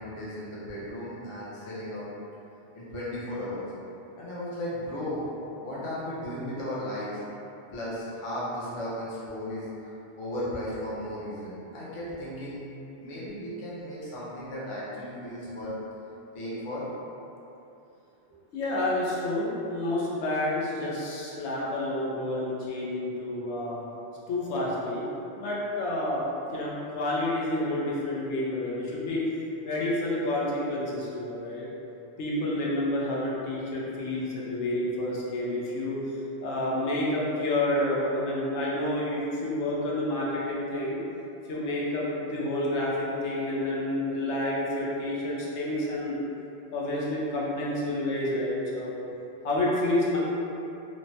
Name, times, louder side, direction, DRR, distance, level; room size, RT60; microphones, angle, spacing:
voice 1, 0.0-2.1 2.7-3.6 4.2-5.3 5.6-7.1 7.7-9.7 10.2-12.7 13.0-15.7 16.3-16.8, left 1 dB, 35° left, -8 dB, 0.5 m, -35 dB
voice 2, 18.5-23.8 24.3-25.0 25.4-26.2 26.5-29.2 29.6-31.7 32.2-36.0 36.4-41.0 41.5-46.2 46.7-49.0 49.4-50.2, left 1 dB, 80° left, -5 dB, 0.9 m, -29 dB
3.1 x 2.1 x 2.6 m, 2.9 s
omnidirectional pair, 1.1 m